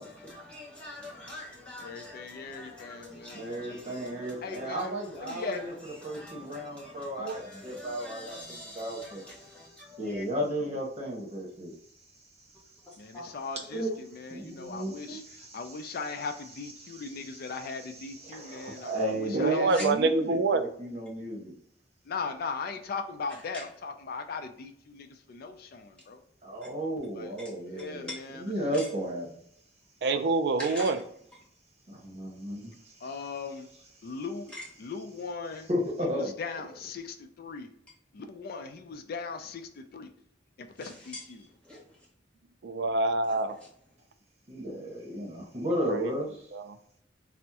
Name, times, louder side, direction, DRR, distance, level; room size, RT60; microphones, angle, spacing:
voice 1, 0.0-10.2 12.5-13.4 13.7-13.9 19.7-19.9 23.5-23.6 27.4-27.5 27.8-28.2 28.7-28.9 30.6-30.9 34.5-34.6 40.8-42.1 43.3-43.4, equal, 5° left, 1.0 m, -43 dB
voice 2, 0.8-3.4 4.4-5.6 13.0-19.8 22.0-26.2 27.1-27.4 27.6-28.5 33.0-33.7 34.0-34.5 34.8-35.7 36.0-37.7 38.1-40.1 40.6-41.5, left 4 dB, 55° left, 0.4 m, -39 dB
voice 3, 3.3-5.7 6.0-9.3 10.0-11.7 14.4-15.6 18.2-21.5 26.4-28.1 28.4-29.4 31.9-32.9 35.7-36.3 44.5-46.3, equal, 40° right, 1.0 m, -34 dB
voice 4, 19.3-20.6 30.0-31.0 42.6-43.6 45.9-46.1 46.5-46.8, right 3 dB, 65° right, 0.4 m, -26 dB
3.4 x 2.1 x 2.8 m
head